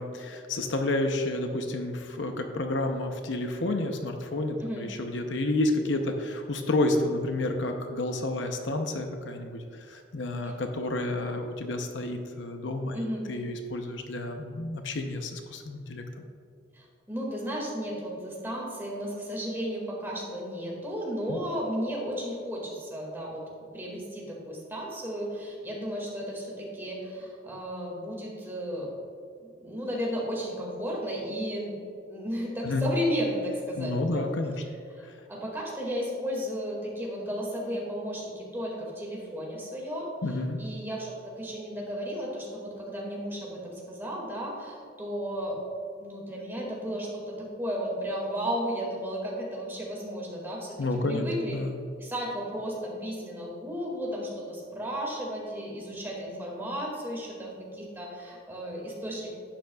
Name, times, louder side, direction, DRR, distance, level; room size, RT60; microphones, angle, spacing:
voice 1, 0.0-16.2 21.3-21.4 32.6-32.9 33.8-34.6 35.0-35.1 40.2-40.6 50.8-51.8, left 2 dB, 65° left, 5 dB, 0.7 m, -30 dB
voice 2, 12.9-13.3 16.7-23.5 23.7-28.9 29.4-31.8 32.1-34.3 34.9-35.0 35.3-40.1 40.6-45.6 46.0-50.8 51.1-51.5 52.0-59.3, equal, 10° right, -3 dB, 2.0 m, -34 dB
11.0 x 9.0 x 2.3 m, 2.4 s
head